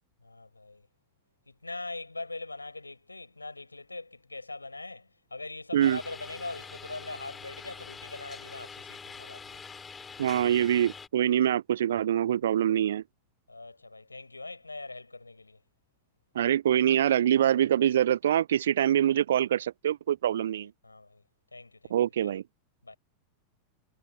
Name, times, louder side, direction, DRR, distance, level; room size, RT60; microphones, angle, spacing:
voice 1, 0.2-0.9 1.5-9.6 13.5-15.6 20.3-21.2 21.5-22.3 22.8-23.0, left 3 dB, 80° left, 5.4 m, -42 dB
sound 1, 5.8-11.1, left 5 dB, 15° left, 4.6 m, -45 dB
voice 2, 10.2-13.0 16.4-20.7 21.9-22.4, right 10 dB, 60° right, 0.4 m, -24 dB
figure-of-eight pair, 90°, 0 cm